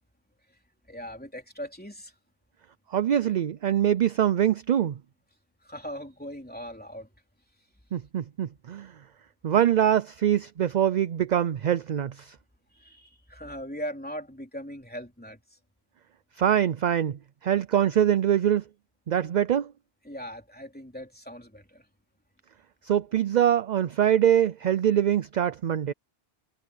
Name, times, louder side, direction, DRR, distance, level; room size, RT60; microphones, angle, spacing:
voice 1, 0.9-2.1 5.6-7.1 12.7-15.4 20.1-21.8, equal, 10° left, 3.4 m, -39 dB
voice 2, 2.9-5.0 7.9-8.9 9.4-12.3 16.4-18.6 19.1-19.7 22.8-25.9, right 10 dB, 55° right, 0.5 m, -24 dB
omnidirectional pair, 1.1 m